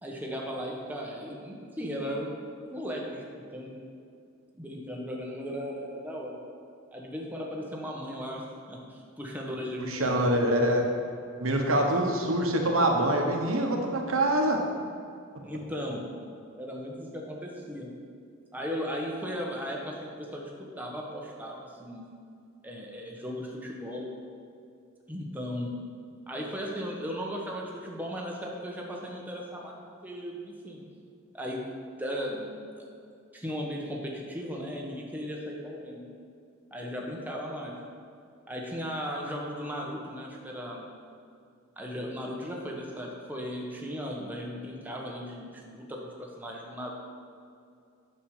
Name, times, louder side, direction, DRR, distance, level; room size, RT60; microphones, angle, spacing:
voice 1, 0.0-2.3 2.7-3.2 3.5-3.8 4.6-6.4 6.9-10.6 15.4-16.0 16.6-17.9 18.5-20.5 20.8-22.0 22.6-24.1 25.1-25.7 26.3-29.7 30.0-30.8 31.3-31.6 32.0-32.9 33.3-36.0 36.7-37.7 38.5-40.8 41.8-46.9, equal, 10° right, -2 dB, 1.3 m, -36 dB
voice 2, 9.9-10.9 11.4-14.6, right 1 dB, 80° right, 2 dB, 1.3 m, -25 dB
9.0 x 6.8 x 5.0 m, 2.4 s
head